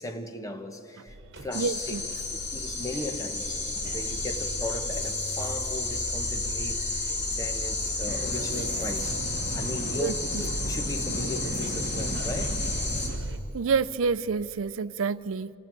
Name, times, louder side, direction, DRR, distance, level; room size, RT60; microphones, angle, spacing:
voice 1, 0.0-1.9 2.3-3.7 3.9-9.2 9.5-12.6, left 1 dB, 15° left, 1.3 m, -37 dB
sound 1, 1.1-13.4, right 1 dB, 60° right, 1.5 m, -37 dB
sound 2, 1.5-13.1, left 3 dB, 60° left, 3.4 m, -32 dB
voice 2, 1.5-2.0 10.0-10.4 13.5-15.5, right 5 dB, 85° right, 0.5 m, -28 dB
sound 3, 8.1-13.2, right 1 dB, 45° right, 1.2 m, -37 dB
24.5 x 15.0 x 9.1 m
head